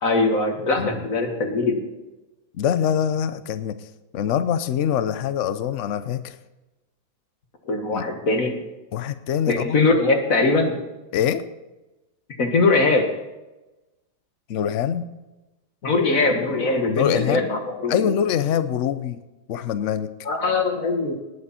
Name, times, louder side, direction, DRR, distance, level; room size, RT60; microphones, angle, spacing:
voice 1, 0.0-1.9 7.7-8.6 9.5-10.8 12.4-13.0 15.8-18.2 20.3-21.1, left 3 dB, 45° left, 4 dB, 2.1 m, -21 dB
voice 2, 2.5-3.9 4.1-6.4 7.9-8.1 8.9-9.8 11.1-11.4 14.5-15.1 16.9-17.5 17.9-19.2 19.5-20.1, left 9 dB, 80° left, 12 dB, 0.6 m, -24 dB
19.0 x 8.7 x 4.3 m, 1.0 s
omnidirectional pair, 2.1 m